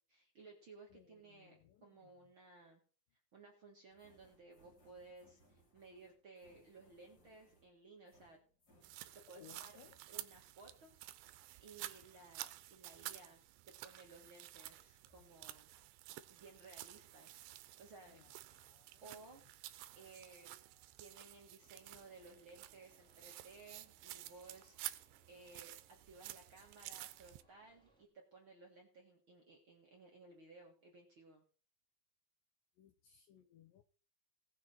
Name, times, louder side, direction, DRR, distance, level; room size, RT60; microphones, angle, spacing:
voice 1, 0.0-2.8 3.3-8.4 9.1-9.7 10.1-15.7 16.3-18.2 19.0-19.4 20.0-20.6 21.0-31.4, right 3 dB, 45° right, 0 dB, 1.7 m, -59 dB
voice 2, 0.9-2.1 9.3-10.0 15.1-15.2 18.1-19.2 32.8-33.8, left 9 dB, 80° left, 8 dB, 2.0 m, -63 dB
sound 1, 3.9-9.5 9.7-10.0, equal, 30° left, 3.6 m, -71 dB
sound 2, 8.8-27.4, right 16 dB, 85° right, 2.6 m, -52 dB
sound 3, 21.6-28.0, right 1 dB, ahead, 1.4 m, -74 dB
18.5 x 6.3 x 4.4 m, 0.40 s
omnidirectional pair, 4.7 m